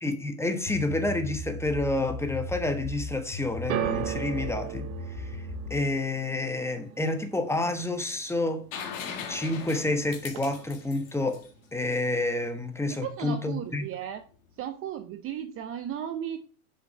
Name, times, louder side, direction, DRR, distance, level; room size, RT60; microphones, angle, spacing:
voice 1, 0.0-8.6 9.3-11.4 11.7-13.8, left 2 dB, 5° left, 1.2 m, -29 dB
sound 1, 0.7-5.9, left 1 dB, 45° left, 1.8 m, -37 dB
sound 2, 3.7-10.0 10.2-10.9 11.6-11.7, right 9 dB, 70° right, 0.9 m, -37 dB
sound 3, 8.7-12.4 14.3-14.4, left 7 dB, 65° left, 1.7 m, -40 dB
voice 2, 12.9-14.2 14.6-16.4, right 10 dB, 30° right, 0.7 m, -35 dB
7.2 x 5.4 x 4.7 m
hypercardioid pair, 90°, 44 cm